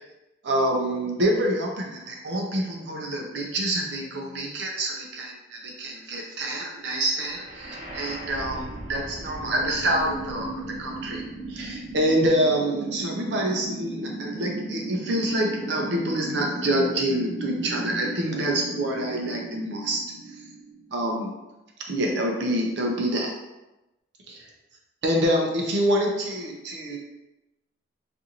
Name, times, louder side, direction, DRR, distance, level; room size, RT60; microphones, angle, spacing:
voice 1, 0.4-11.2 11.5-20.0 20.9-21.3 21.9-23.3 24.3-24.4 25.0-27.0, right 1 dB, 60° right, 0 dB, 0.4 m, -26 dB
sound 1, 7.2-21.1, right 2 dB, 35° right, 0.8 m, -36 dB
2.5 x 2.5 x 2.8 m, 0.98 s
head